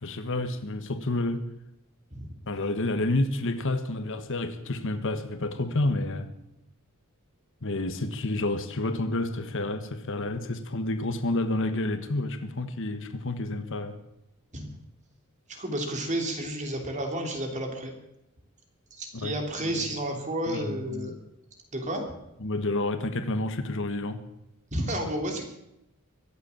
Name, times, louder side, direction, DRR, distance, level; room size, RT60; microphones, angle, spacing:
voice 1, 0.0-1.4 2.5-6.3 7.6-13.9 19.1-19.3 19.7-19.8 20.5-21.2 22.4-24.2, left 2 dB, 60° left, 9 dB, 1.4 m, -29 dB
voice 2, 15.5-17.9 19.0-21.2 21.7-22.0 24.7-25.4, right 1 dB, 35° right, 4 dB, 3.2 m, -31 dB
23.5 x 8.1 x 7.2 m, 0.84 s
head